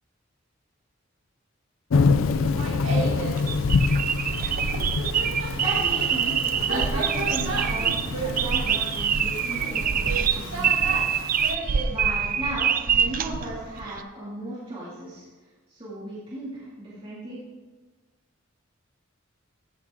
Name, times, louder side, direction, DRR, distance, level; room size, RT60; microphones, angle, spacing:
Thunder / Rain, 1.9-11.5, left 4 dB, 85° left, 0.4 m, -27 dB
Laughter, 2.3-3.4 4.6-11.9, right 3 dB, 85° right, 1.6 m, -34 dB
sound 1, 3.1-14.0, right 7 dB, 45° right, 0.4 m, -25 dB
voice 1, 5.5-11.0 11.8-15.2 15.7-17.4, right 1 dB, 30° right, -10 dB, 2.4 m, -36 dB
15.0 x 6.0 x 3.7 m, 1.3 s
head